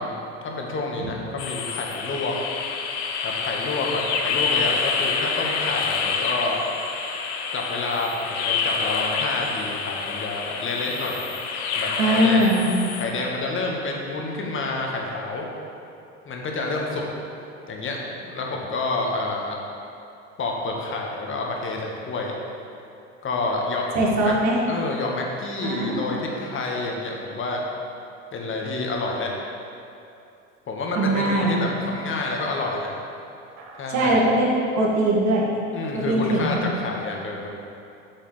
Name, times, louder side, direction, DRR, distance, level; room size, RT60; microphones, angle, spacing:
voice 1, 0.0-2.4 3.2-6.6 7.5-11.2 11.7-12.5 13.0-15.5 16.2-17.0 17.7-19.6 20.4-22.3 23.2-23.9 24.2-24.3 24.7-27.6 28.3-29.3 30.7-32.9 33.8-34.2 35.7-37.5, left 2 dB, 30° left, 0 dB, 1.5 m, -28 dB
sound 1, 1.4-13.0, left 5 dB, 60° left, 0.9 m, -27 dB
voice 2, 12.0-12.7 24.0-24.6 25.6-26.2 31.0-31.5 33.6-34.5 34.8-35.4 35.9-36.6, right 1 dB, 45° right, -3 dB, 2.0 m, -21 dB
8.7 x 7.4 x 3.3 m, 2.7 s
figure-of-eight pair, 70°, 39 cm